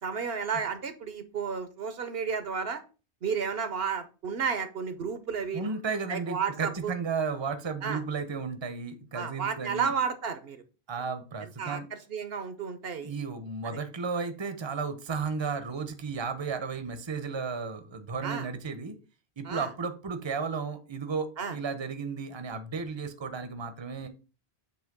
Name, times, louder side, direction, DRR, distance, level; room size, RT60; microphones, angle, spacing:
voice 1, 0.0-2.8 3.2-5.7 6.1-6.9 7.8-8.0 9.1-10.6 11.4-13.1 13.6-13.8 18.2-18.5 19.4-19.7 21.4-21.6, right 6 dB, 65° right, 11 dB, 1.0 m, -32 dB
voice 2, 5.5-9.9 10.9-11.9 13.0-19.0 19.4-24.1, right 5 dB, 25° right, 10 dB, 0.8 m, -34 dB
7.8 x 3.0 x 5.9 m, 0.33 s
omnidirectional pair, 1.1 m